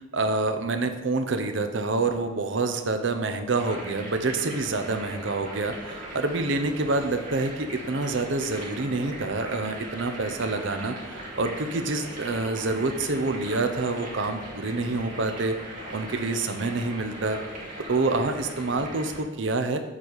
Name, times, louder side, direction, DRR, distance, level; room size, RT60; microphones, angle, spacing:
voice 1, 0.1-15.6 15.9-17.4 17.9-19.8, right 3 dB, 70° right, 7 dB, 0.7 m, -27 dB
sound 1, 3.6-19.2, right 1 dB, 45° right, 1.9 m, -39 dB
7.3 x 4.1 x 6.5 m, 1.1 s
head